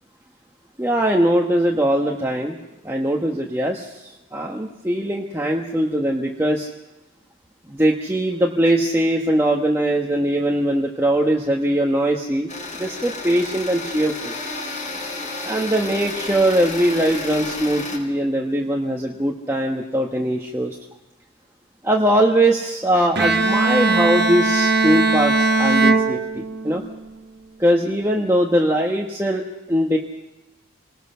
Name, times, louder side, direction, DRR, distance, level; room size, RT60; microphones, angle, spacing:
voice 1, 0.8-2.6 2.8-6.7 7.6-12.5 12.8-14.3 15.4-20.8 21.8-26.8 27.6-30.0, right 1 dB, 10° right, -1 dB, 1.3 m, -21 dB
sound 1, 12.5-18.0, left 3 dB, 35° left, 5.2 m, -31 dB
Bowed string instrument, 23.2-26.9, right 3 dB, 50° right, 1.3 m, -19 dB
27.5 x 19.5 x 5.7 m, 1.0 s
head